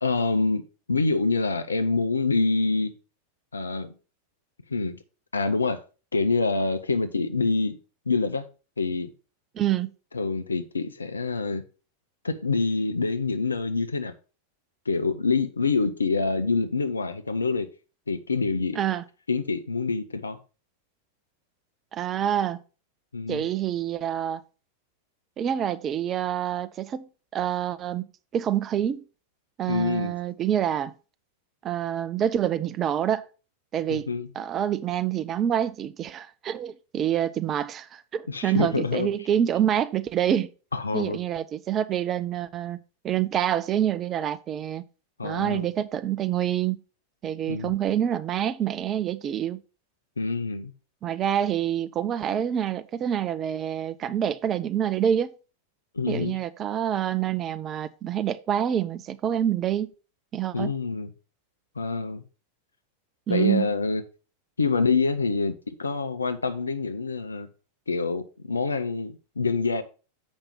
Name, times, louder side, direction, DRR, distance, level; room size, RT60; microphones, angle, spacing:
voice 1, 0.0-2.9 3.5-3.9 4.7-5.0 5.3-5.8 6.1-7.8 8.1-8.5 8.8-9.1 10.1-11.6 12.2-14.1 14.9-17.7 18.1-18.8 19.3-20.4 23.1-23.5 29.7-30.1 33.9-34.3 38.3-39.1 40.7-41.2 45.2-45.7 47.5-47.7 50.2-50.7 55.9-56.4 60.5-61.1 61.8-62.2 63.3-64.0 64.6-67.5 67.9-69.8, left 4 dB, 75° left, 0.8 m, -26 dB
voice 2, 9.5-9.9 18.8-19.0 21.9-22.6 23.3-24.4 25.4-28.0 28.3-29.0 29.6-30.9 31.6-33.2 33.7-34.1 34.4-40.5 40.9-42.8 43.0-44.8 45.2-46.8 47.2-49.6 51.0-55.3 56.1-59.9 60.3-60.7 63.3-63.7, right 10 dB, 30° right, 0.6 m, -27 dB
7.3 x 5.4 x 5.3 m
figure-of-eight pair, 90°, 0 cm